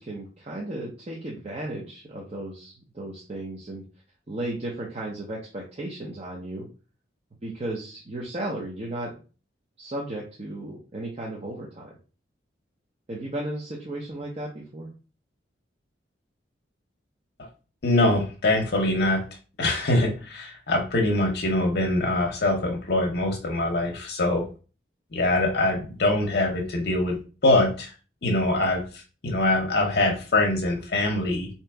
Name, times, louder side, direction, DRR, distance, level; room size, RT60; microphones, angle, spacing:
voice 1, 0.0-3.8 4.3-6.7 7.4-9.1 9.8-12.0 13.1-14.9, right 1 dB, 35° right, -3 dB, 0.7 m, -35 dB
voice 2, 17.8-19.2 19.6-24.5 25.1-27.9 28.2-28.8 29.2-31.5, left 2 dB, 60° left, 1 dB, 0.7 m, -23 dB
3.9 x 2.9 x 3.4 m, 0.35 s
head